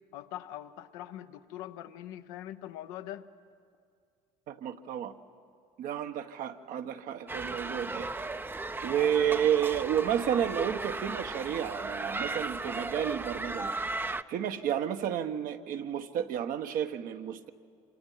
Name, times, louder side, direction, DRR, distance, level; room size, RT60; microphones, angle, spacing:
voice 1, 0.1-3.3 8.9-9.2, left 12 dB, 85° left, 9 dB, 0.9 m, -42 dB
voice 2, 4.5-5.1 5.8-8.1 8.8-14.0 14.3-17.5, right 9 dB, 65° right, 7 dB, 1.2 m, -31 dB
sound 1, 7.3-14.2, right 3 dB, 15° right, 0.6 m, -36 dB
26.5 x 25.5 x 5.7 m, 2.3 s
supercardioid pair, 85°, 16 cm